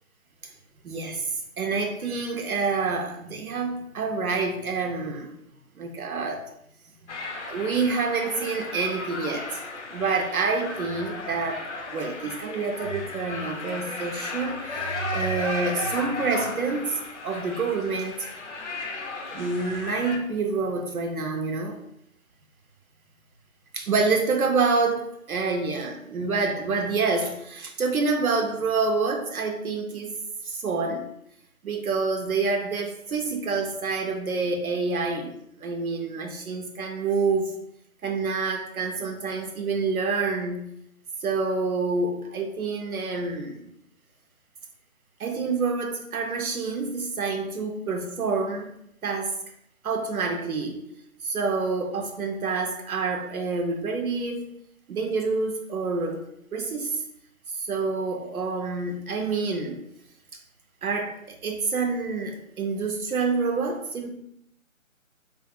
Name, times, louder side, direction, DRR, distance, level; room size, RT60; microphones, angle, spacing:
voice 1, 0.8-1.3 1.6-5.3 5.8-6.4 7.4-9.4 9.9-11.6 11.9-17.0 17.2-18.2 19.3-21.8 23.7-30.2 30.6-31.1 31.6-37.5 38.0-40.6 41.2-43.7 45.2-48.7 49.0-49.3 49.8-50.8 51.2-54.5 54.9-56.2 56.5-57.0 57.6-59.8 60.8-64.1, right 4 dB, 80° right, 3 dB, 0.6 m, -27 dB
sound 1, 7.1-20.2, left 3 dB, 55° left, 0.6 m, -35 dB
2.3 x 2.2 x 2.7 m, 0.75 s
figure-of-eight pair, 160°, 42 cm